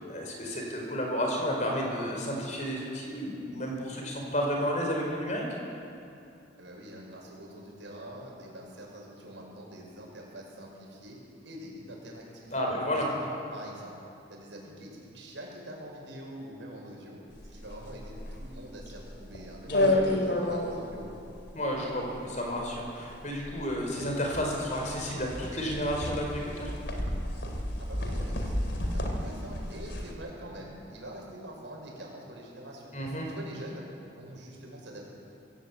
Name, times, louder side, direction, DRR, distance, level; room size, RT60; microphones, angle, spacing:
voice 1, 0.0-5.5 12.5-13.1 19.7-20.0 21.5-26.7 32.9-33.3, equal, 40° left, 0 dB, 4.9 m, -31 dB
voice 2, 6.6-11.2 11.4-12.5 12.9-13.9 14.3-21.1 27.8-32.9 33.3-35.1, right 1 dB, 80° right, -2 dB, 6.3 m, -45 dB
sound 1, 17.4-30.1, left 1 dB, 70° left, 3.0 m, -32 dB
24.5 x 16.0 x 8.5 m, 2.6 s
head